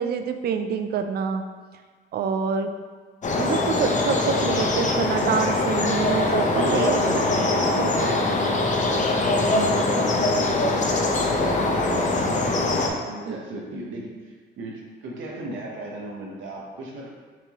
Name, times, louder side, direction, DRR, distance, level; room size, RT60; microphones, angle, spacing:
voice 1, 0.0-1.4 2.1-2.7 3.4-7.0 13.3-13.4, right 6 dB, 55° right, 7 dB, 0.4 m, -26 dB
sound 1, 3.2-12.9, left 2 dB, 40° left, 0.6 m, -22 dB
voice 2, 6.5-8.2 9.3-10.6 10.9-17.1, right 2 dB, 80° right, -2 dB, 0.9 m, -34 dB
5.9 x 2.9 x 2.9 m, 1.5 s
cardioid pair, 90°, 20 cm